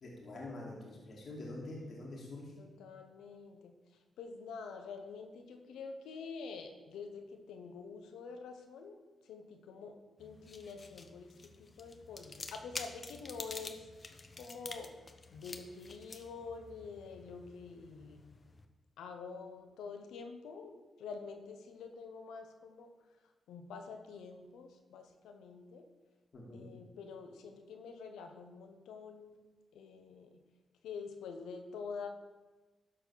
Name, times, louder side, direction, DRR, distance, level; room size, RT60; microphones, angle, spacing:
voice 1, 0.0-2.5 26.3-26.7, left 2 dB, 60° left, -3 dB, 2.4 m, -45 dB
voice 2, 2.6-9.0 9.2-13.9 14.4-14.9 15.3-18.3 19.0-22.9 23.5-25.8 26.5-29.4 29.7-30.4 30.8-32.1, left 5 dB, 90° left, 5 dB, 1.0 m, -47 dB
sound 1, 10.2-18.7, left 3 dB, 40° left, 0.9 m, -49 dB
12.5 x 4.4 x 6.4 m, 1.2 s
supercardioid pair, 55°, 0 cm